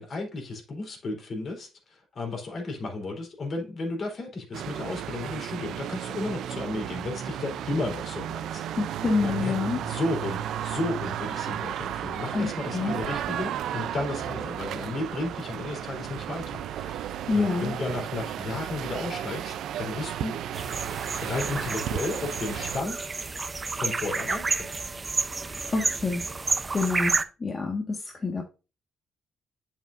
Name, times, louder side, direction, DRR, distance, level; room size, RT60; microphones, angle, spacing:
voice 1, 0.0-20.4 21.2-23.1 23.7-24.7, left 2 dB, 55° left, 3.6 m, -34 dB
sound 1, 4.5-22.8, right 10 dB, 80° right, 0.5 m, -34 dB
voice 2, 8.8-9.8 12.3-13.0 17.3-17.7 25.7-26.2 26.7-27.1 27.4-28.4, left 3 dB, 30° left, 1.6 m, -27 dB
sound 2, 20.5-27.2, right 3 dB, 25° right, 0.7 m, -30 dB
8.3 x 7.1 x 2.6 m
cardioid pair, 90°, 0 cm